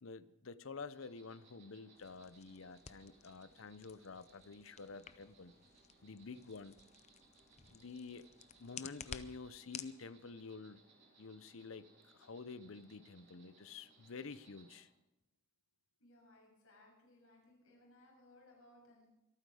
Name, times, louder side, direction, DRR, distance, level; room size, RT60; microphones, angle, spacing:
voice 1, 0.0-5.5 6.0-6.7 7.7-8.2 8.6-10.8 11.2-14.9, left 4 dB, 70° left, 15 dB, 0.7 m, -49 dB
Insect, 0.9-14.8, right 3 dB, 55° right, 4.2 m, -67 dB
sound 1, 2.0-10.0, left 7 dB, 30° left, 0.6 m, -54 dB
voice 2, 16.0-19.1, left 1 dB, 90° left, -1 dB, 6.9 m, -63 dB
25.0 x 9.3 x 4.9 m, 0.95 s
head